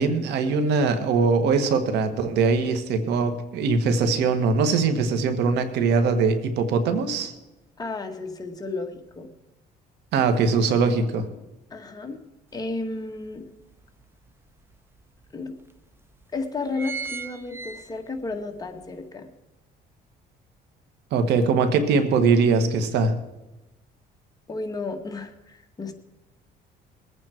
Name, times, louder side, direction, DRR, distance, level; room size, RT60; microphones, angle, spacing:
voice 1, 0.0-7.3 10.1-11.3 21.1-23.2, right 4 dB, 80° right, 8 dB, 1.7 m, -21 dB
voice 2, 7.8-9.3 11.7-12.2 12.5-13.4 15.3-15.6 16.3-19.3 24.5-25.9, left 3 dB, 20° left, 4 dB, 1.8 m, -33 dB
sound 1, 12.5-12.6 13.1-14.3 14.9-15.0 15.2-15.3 16.0-16.2 16.5-18.3 18.7-18.8, right 5 dB, 15° right, 0.8 m, -36 dB
21.5 x 8.7 x 4.6 m, 1.0 s
cardioid pair, 110°, 17 cm